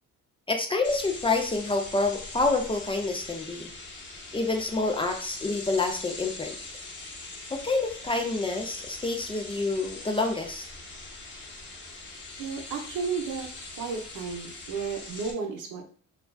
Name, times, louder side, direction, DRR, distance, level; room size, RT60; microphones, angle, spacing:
voice 1, 0.5-3.7 4.3-6.6 7.5-10.7, left 3 dB, 20° left, 3 dB, 0.4 m, -28 dB
sound 1, 0.8-15.3, left 2 dB, 40° left, 0.7 m, -42 dB
voice 2, 12.4-13.5 13.8-15.9, right 5 dB, 80° right, 2 dB, 0.7 m, -33 dB
2.4 x 2.3 x 2.2 m, 0.43 s
cardioid pair, 90°, 30 cm